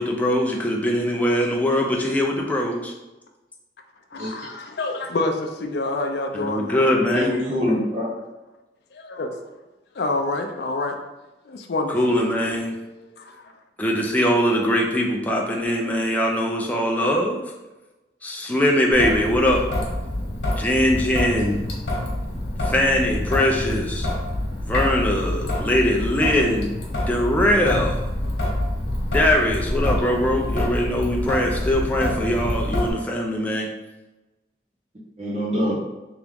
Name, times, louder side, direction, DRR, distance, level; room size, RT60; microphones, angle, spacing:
voice 1, 0.0-2.9 6.4-7.3 11.9-12.8 13.8-17.4 18.2-19.7 20.6-21.6 22.6-24.1 24.6-26.8 27.1-28.0 29.1-33.7, left 1 dB, 10° left, -1 dB, 0.4 m, -21 dB
voice 2, 4.1-6.9 8.9-9.4 9.9-11.0 11.4-12.0 13.2-13.5, left 2 dB, 65° left, 3 dB, 0.4 m, -27 dB
voice 3, 7.0-8.0 35.2-35.8, left 1 dB, 35° right, -7 dB, 0.7 m, -24 dB
Traffic noise roadway noise / Drip / Trickle dribble, 18.9-32.9, left 1 dB, 90° left, 1.1 m, -26 dB
3.5 x 2.9 x 3.4 m, 1.1 s
head